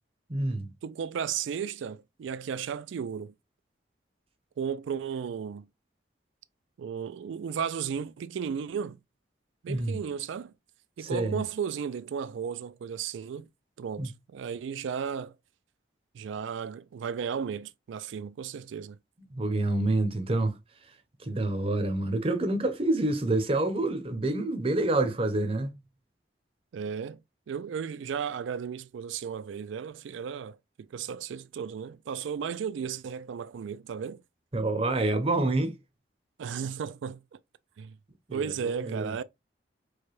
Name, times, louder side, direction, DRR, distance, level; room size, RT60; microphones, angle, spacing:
voice 1, 0.3-0.7 9.7-10.0 11.0-11.4 14.0-14.1 19.3-20.6 21.2-25.7 34.5-35.8 38.3-39.1, right 2 dB, 30° right, 0.6 m, -27 dB
voice 2, 0.8-3.3 4.6-5.7 6.8-9.0 9.6-10.5 11.0-13.5 13.8-15.3 16.1-19.0 26.7-27.2 27.5-34.2 36.4-37.4 37.8-38.0 38.3-39.2, right 7 dB, 85° right, 0.3 m, -34 dB
4.7 x 2.2 x 3.0 m
head